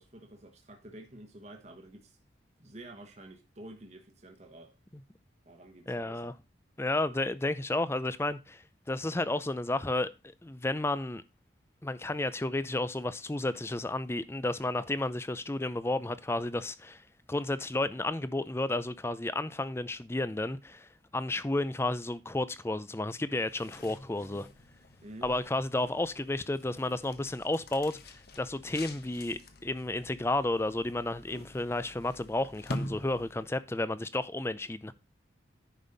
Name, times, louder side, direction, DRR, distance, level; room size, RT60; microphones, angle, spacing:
voice 1, 0.0-2.2 2.6-4.7 5.5-6.3 25.0-25.3, right 1 dB, 35° right, 1.2 m, -49 dB
voice 2, 5.9-6.3 6.8-10.1 10.4-11.2 11.8-24.5 25.2-34.9, left 2 dB, 15° left, 0.5 m, -32 dB
sound 1, 23.3-33.6, left 1 dB, 55° left, 1.1 m, -46 dB
10.0 x 5.4 x 4.0 m
head